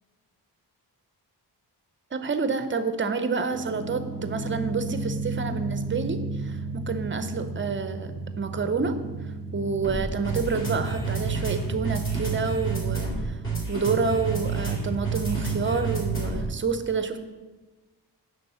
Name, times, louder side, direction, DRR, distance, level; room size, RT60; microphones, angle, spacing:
voice 1, 2.1-9.0 9.5-13.4 13.7-17.2, right 4 dB, 30° right, 9 dB, 0.6 m, -28 dB
sound 1, 3.5-16.6, right 4 dB, 30° left, 2.8 m, -30 dB
9.7 x 3.9 x 6.8 m, 1.3 s
wide cardioid pair, 155°, 40 cm